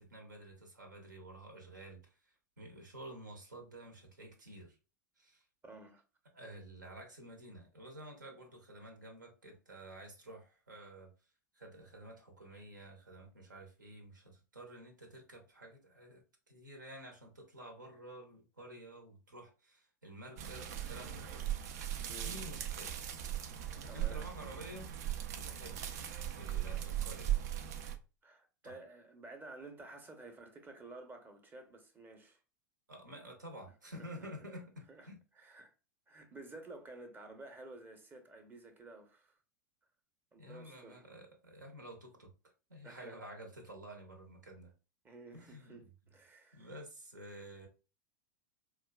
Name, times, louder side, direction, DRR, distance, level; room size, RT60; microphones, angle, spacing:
voice 1, 0.0-4.8 5.2-5.4 6.3-11.1 11.5-21.3 22.1-23.0 23.9-24.9 25.3-25.8 26.4-27.4 28.6-28.8 32.9-35.2 40.3-42.3 42.7-44.7 45.3-45.8 46.5-47.7, right 1 dB, 80° right, 1.0 m, -51 dB
voice 2, 5.6-6.0 22.0-22.4 23.9-24.3 28.2-32.4 34.0-34.3 34.9-35.1 35.4-35.7 36.1-39.4 40.3-41.1 42.8-43.2 45.0-46.7, right 2 dB, 20° right, 0.8 m, -52 dB
sound 1, 20.4-28.0, right 11 dB, 60° right, 0.4 m, -38 dB
4.3 x 2.4 x 2.2 m
figure-of-eight pair, 85°, 10 cm